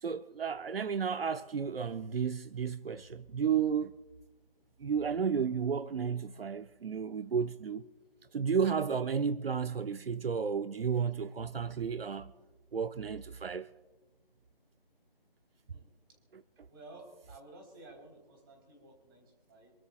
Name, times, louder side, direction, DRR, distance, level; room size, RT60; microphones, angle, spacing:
voice 1, 0.0-3.9 4.8-7.8 8.3-12.3 12.7-13.7, right 6 dB, 80° right, 0.7 m, -32 dB
voice 2, 16.7-19.7, right 2 dB, 25° right, 3.8 m, -53 dB
28.0 x 13.0 x 2.4 m
figure-of-eight pair, 165°, 29 cm